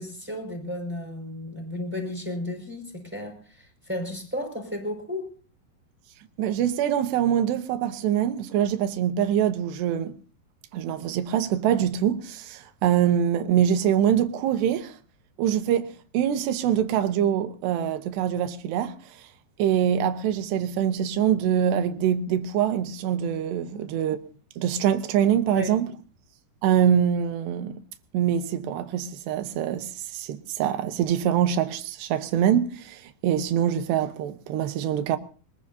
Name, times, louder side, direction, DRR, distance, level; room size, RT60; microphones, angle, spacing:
voice 1, 0.0-5.3 23.7-23.9 25.5-25.8, left 1 dB, 5° right, 5.1 m, -34 dB
voice 2, 6.4-10.1 10.7-15.0 15.4-19.0 19.6-24.2 24.6-25.9 26.6-27.8 28.1-35.2, right 9 dB, 85° right, 3.3 m, -24 dB
23.0 x 21.0 x 2.8 m
omnidirectional pair, 4.7 m